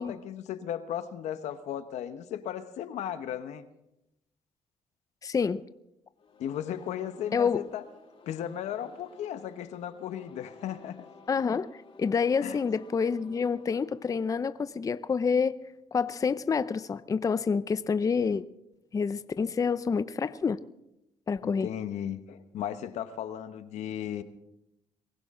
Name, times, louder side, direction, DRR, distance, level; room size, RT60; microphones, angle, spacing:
voice 1, 0.0-3.6 6.4-7.8 8.3-11.1 12.4-12.6 21.4-24.2, left 10 dB, 85° left, 11 dB, 1.1 m, -36 dB
voice 2, 5.2-5.6 7.3-7.6 11.3-15.6 15.9-18.5 18.9-20.6 21.3-21.7, left 5 dB, 30° left, 15 dB, 0.5 m, -28 dB
sound 1, 6.2-15.1, left 4 dB, 55° left, 4.1 m, -54 dB
23.0 x 15.5 x 3.7 m, 0.85 s
cardioid pair, 90°, 11 cm